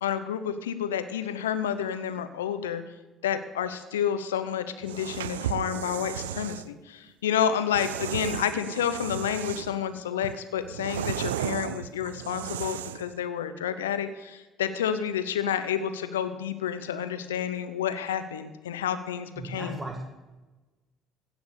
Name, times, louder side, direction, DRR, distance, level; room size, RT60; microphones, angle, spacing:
voice 1, 0.0-2.8 3.2-19.8, left 9 dB, 85° left, 11 dB, 0.8 m, -30 dB
sound 1, 4.8-6.7 7.7-9.8 10.2-13.1, right 12 dB, 85° right, 0.3 m, -34 dB
voice 2, 19.4-20.0, right 2 dB, 20° right, 1 dB, 2.0 m, -36 dB
16.5 x 6.2 x 6.8 m, 1.2 s
hypercardioid pair, 60°, 0 cm